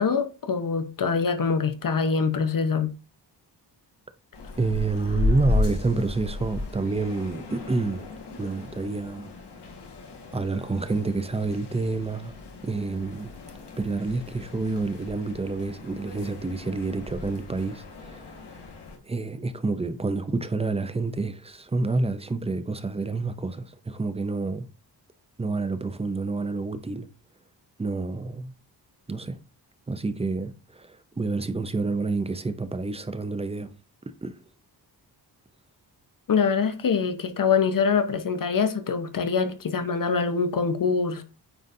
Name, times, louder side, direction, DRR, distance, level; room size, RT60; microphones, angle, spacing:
voice 1, 0.0-2.9 36.3-41.2, left 5 dB, 50° left, 0.8 m, -24 dB
sound 1, 4.3-19.0, left 3 dB, 70° left, 1.5 m, -34 dB
voice 2, 4.6-8.1 8.4-9.3 10.3-12.4 12.6-13.3 13.8-18.2 19.0-24.7 25.4-27.1 27.8-28.5 29.1-29.4 29.9-33.7 34.1-34.4, right 3 dB, 15° right, 0.4 m, -28 dB
9.1 x 3.9 x 2.6 m
wide cardioid pair, 120°, 42 cm